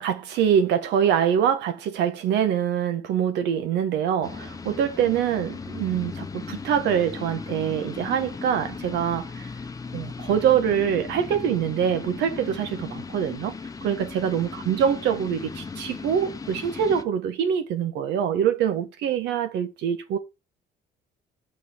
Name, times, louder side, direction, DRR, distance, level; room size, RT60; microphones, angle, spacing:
voice 1, 0.0-9.4 9.9-13.5 13.8-20.2, right 8 dB, 80° right, 1.6 m, -24 dB
sound 1, 4.2-17.0, left 4 dB, 20° left, 0.8 m, -37 dB
6.2 x 5.1 x 6.4 m
cardioid pair, 115°, 18 cm